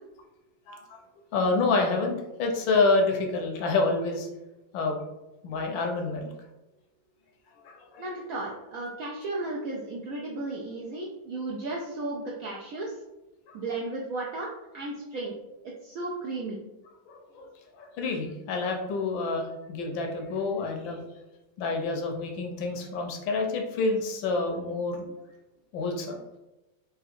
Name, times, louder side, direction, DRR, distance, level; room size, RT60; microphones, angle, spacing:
voice 1, 0.7-1.0 1.3-4.3 4.7-5.0 5.4-6.3 7.7-8.0 13.5-13.6 17.1-17.5 17.8-21.0 21.6-25.1 25.7-26.2, left 3 dB, 90° left, 3 dB, 1.4 m, -28 dB
voice 2, 8.0-13.0 13.5-14.5 14.7-15.4 15.8-16.7, right 2 dB, 80° right, -3 dB, 0.7 m, -34 dB
3.9 x 2.7 x 2.5 m, 0.99 s
omnidirectional pair, 2.0 m